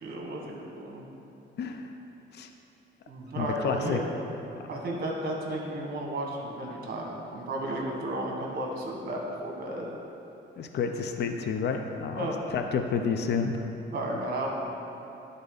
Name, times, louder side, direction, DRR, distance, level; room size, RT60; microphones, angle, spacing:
voice 1, 0.0-1.0 3.1-4.0 4.7-10.0 12.1-12.4 13.9-14.5, right 1 dB, 50° right, -1 dB, 1.5 m, -33 dB
voice 2, 1.6-1.9 2.3-2.5 3.3-4.0 10.6-13.6, left 6 dB, 60° left, 5 dB, 0.6 m, -30 dB
11.0 x 4.0 x 4.0 m, 2.9 s
cardioid pair, 90°, 20 cm